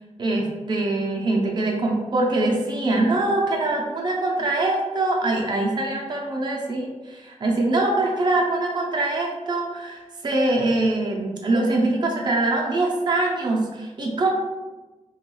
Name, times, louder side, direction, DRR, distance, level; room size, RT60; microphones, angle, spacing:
voice 1, 0.2-14.3, right 2 dB, 35° right, -1 dB, 0.5 m, -23 dB
3.5 x 2.3 x 3.0 m, 1.2 s
wide cardioid pair, 145°, 13 cm